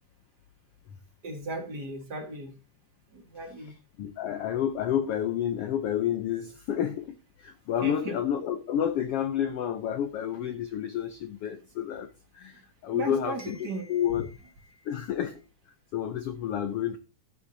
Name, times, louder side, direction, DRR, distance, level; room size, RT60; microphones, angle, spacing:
voice 1, 1.2-2.5 3.1-3.7 7.8-8.2 12.9-14.0 14.7-14.9, right 2 dB, 40° right, 4 dB, 1.7 m, -37 dB
voice 2, 3.6-12.1 12.3-14.3 14.8-15.4 15.9-17.0, left 9 dB, 90° left, 9 dB, 1.3 m, -30 dB
13.0 x 9.2 x 2.8 m, 0.29 s
omnidirectional pair, 3.7 m